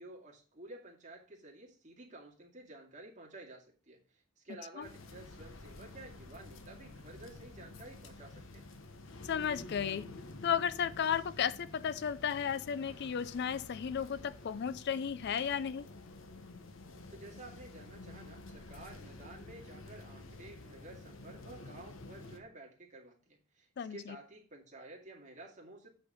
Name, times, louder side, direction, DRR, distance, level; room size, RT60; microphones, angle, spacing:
voice 1, 0.0-8.7 17.1-25.9, right 2 dB, 40° right, 2.2 m, -52 dB
sound 1, 4.8-22.4, left 2 dB, 80° left, 1.1 m, -50 dB
voice 2, 9.2-10.1 10.4-15.9 23.8-24.2, left 8 dB, 55° left, 0.4 m, -34 dB
8.3 x 4.4 x 6.2 m
head